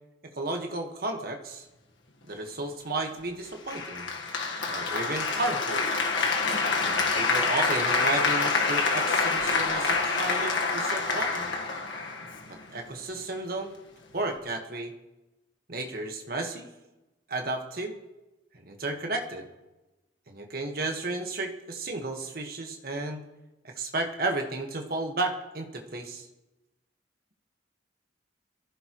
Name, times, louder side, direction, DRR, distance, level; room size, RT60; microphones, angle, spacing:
voice 1, 0.4-1.7 2.3-4.1 4.7-5.9 6.8-11.5 12.5-13.7 14.1-14.9 15.7-16.7 17.3-18.0 18.6-19.5 20.3-23.2 23.6-26.3, right 2 dB, 50° right, 3 dB, 1.5 m, -33 dB
Applause, 3.7-12.7, left 4 dB, 80° left, 1.5 m, -27 dB
22.5 x 15.0 x 3.1 m, 1.1 s
head